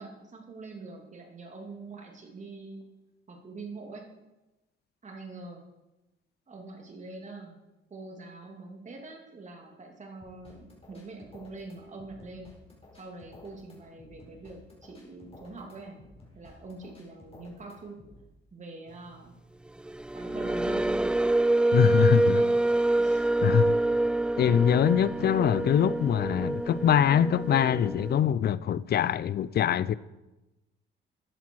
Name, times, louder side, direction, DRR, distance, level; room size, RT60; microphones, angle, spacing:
voice 1, 0.0-2.8 3.3-4.1 5.0-5.6 6.5-12.5 13.0-16.0 16.3-18.0 18.5-19.3 20.1-21.2 21.7-22.6 23.0-23.3, right 3 dB, 35° right, 2.8 m, -44 dB
sound 1, 10.2-18.2, left 2 dB, 30° left, 5.0 m, -54 dB
sound 2, 19.8-28.2, right 2 dB, 5° right, 0.3 m, -26 dB
voice 2, 21.7-22.4 23.4-23.8 24.4-29.9, left 9 dB, 55° left, 0.5 m, -23 dB
14.0 x 10.5 x 4.7 m
cardioid pair, 90°, 20 cm